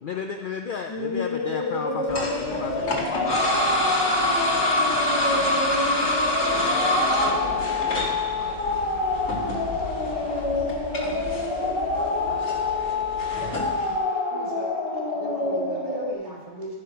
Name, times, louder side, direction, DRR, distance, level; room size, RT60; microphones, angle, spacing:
voice 1, 0.0-3.5, left 6 dB, 60° left, 4 dB, 0.5 m, -33 dB
sound 1, 0.9-16.1, left 3 dB, 25° left, 0.9 m, -27 dB
sound 2, 2.1-14.0, left 1 dB, 90° left, 1.8 m, -27 dB
voice 2, 4.5-4.9 7.7-8.9 9.8-10.4 10.8-11.0 12.0-12.6 13.2-13.3 14.0-14.1 16.2-16.3, right 1 dB, 60° right, -6 dB, 3.5 m, -48 dB
voice 3, 6.8-8.2 8.7-9.0 12.8-13.3, right 3 dB, 80° right, -1 dB, 1.5 m, -51 dB
voice 4, 9.7-10.2 11.0-11.4 12.2-12.8 13.3-13.8 14.3-14.7 15.1-16.7, equal, 25° right, -4 dB, 2.1 m, -40 dB
10.5 x 5.1 x 5.6 m, 1.3 s
omnidirectional pair, 1.3 m